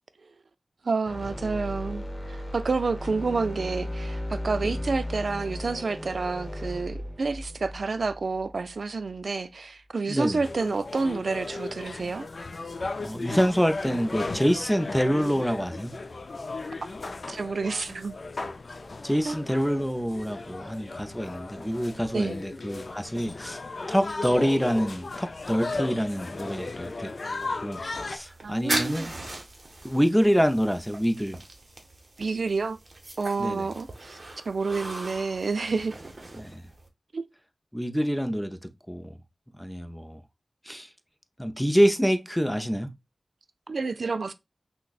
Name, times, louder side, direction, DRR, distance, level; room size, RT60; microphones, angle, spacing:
voice 1, 0.8-12.3 17.3-18.2 19.2-19.4 22.1-22.4 28.4-29.1 32.2-32.8 33.2-34.2 34.5-36.0 37.1-37.2 43.7-44.3, right 4 dB, 90° right, 0.3 m, -29 dB
sound 1, 1.0-9.2, left 1 dB, 30° left, 0.9 m, -36 dB
voice 2, 10.1-10.4 12.9-15.9 19.0-23.6 23.9-27.1 27.6-29.1 29.8-31.4 33.4-33.7 36.4-36.6 37.7-38.6 38.9-39.2 39.6-40.2 40.7-40.9 41.4-42.9, equal, 5° left, 0.4 m, -26 dB
sound 2, 10.4-28.2, left 3 dB, 70° left, 0.3 m, -36 dB
sound 3, 28.2-36.9, right 2 dB, 50° right, 0.8 m, -38 dB
5.8 x 2.1 x 2.3 m
wide cardioid pair, 75°, 0 cm